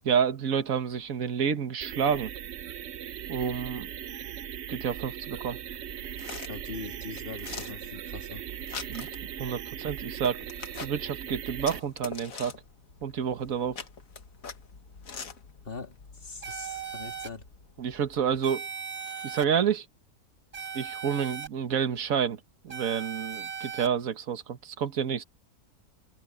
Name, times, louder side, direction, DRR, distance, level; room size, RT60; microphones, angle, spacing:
voice 1, 0.1-2.3 3.3-3.9 4.7-5.6 8.9-9.1 9.4-10.4 10.8-12.5 13.0-13.8 17.8-18.7 19.2-19.9 20.7-22.4 22.6-25.2, right 7 dB, 75° right, 1.7 m, -29 dB
sound 1, 1.8-11.8, right 9 dB, 60° right, 0.9 m, -39 dB
sound 2, 5.4-18.4, left 5 dB, 75° left, 1.9 m, -45 dB
voice 2, 6.4-8.4 15.6-17.4, left 4 dB, 40° left, 2.4 m, -42 dB
sound 3, 16.4-17.3 18.4-19.4 20.5-21.5 22.7-23.9, right 6 dB, 25° right, 2.2 m, -38 dB
open air
omnidirectional pair, 1.4 m